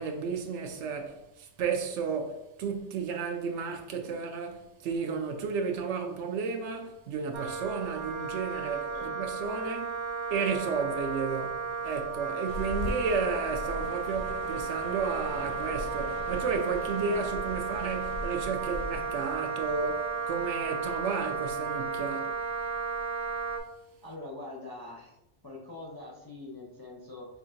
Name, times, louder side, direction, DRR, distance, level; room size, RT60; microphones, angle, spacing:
voice 1, 0.0-22.4, right 5 dB, 75° right, 0.9 m, -33 dB
Wind instrument woodwind instrument, 7.3-23.6, right 5 dB, 50° right, 0.6 m, -34 dB
sound 1, 12.5-20.6, left 2 dB, 90° left, 1.0 m, -41 dB
voice 2, 24.0-25.2 25.4-27.3, left 2 dB, 30° left, 0.4 m, -43 dB
5.7 x 2.5 x 2.5 m
omnidirectional pair, 1.2 m